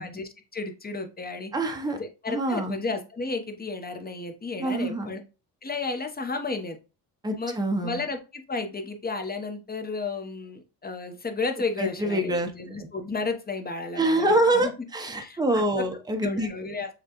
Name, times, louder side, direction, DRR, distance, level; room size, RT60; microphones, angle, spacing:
voice 1, 0.0-1.5 2.0-5.2 5.6-6.8 7.4-14.7 15.2-15.9 16.2-17.0, left 3 dB, 20° left, 5 dB, 0.9 m, -33 dB
voice 2, 1.5-2.0 2.3-2.8 4.6-5.1 7.2-8.0 11.8-12.5 14.0-16.5, right 1 dB, 10° right, 5 dB, 0.8 m, -25 dB
6.7 x 2.3 x 3.0 m, 0.31 s
cardioid pair, 80°, 44 cm